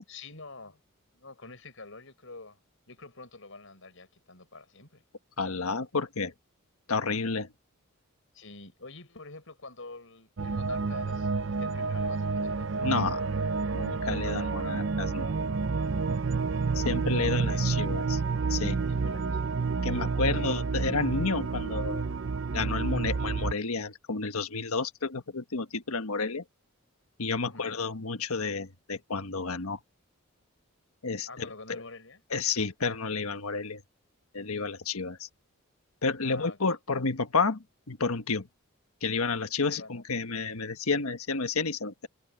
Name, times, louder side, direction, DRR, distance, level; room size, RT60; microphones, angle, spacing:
voice 1, 0.1-0.8 1.1-2.6 2.9-5.0 8.3-12.8 14.2-14.6 17.2-17.7 18.9-19.5 19.8-20.6 27.4-27.7 31.3-32.2 36.2-36.6 39.6-40.0, left 3 dB, 65° left, 5.7 m, -47 dB
voice 2, 5.4-6.3 6.9-7.5 12.8-13.3 13.7-15.3 16.7-18.2 18.5-18.8 19.8-22.1 22.5-26.4 27.2-29.8 31.0-31.8 32.3-33.8 34.3-35.2 36.0-38.5 39.0-42.1, left 4 dB, 85° left, 1.5 m, -30 dB
sound 1, 10.4-23.5, right 4 dB, 55° right, 0.5 m, -29 dB
head